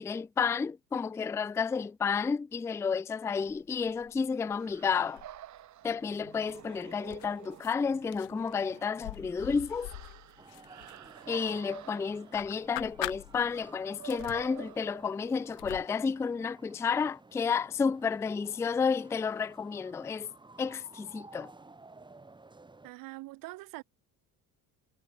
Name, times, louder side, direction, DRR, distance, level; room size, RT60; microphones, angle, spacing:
voice 1, 0.0-5.2 5.8-9.9 11.3-20.3 20.6-21.5, left 5 dB, 10° left, 0.3 m, -31 dB
sound 1, 3.4-4.2 4.5-5.6 6.1-7.7 8.1-11.9 12.3-13.7 14.0-15.9, left 33 dB, 85° left, 1.2 m, -44 dB
sound 2, 4.6-15.6, right 13 dB, 50° right, 7.2 m, -50 dB
sound 3, 10.4-22.9, right 3 dB, 15° right, 6.3 m, -55 dB
voice 2, 22.8-23.8, right 20 dB, 70° right, 2.6 m, -43 dB
cardioid pair, 130°, 35 cm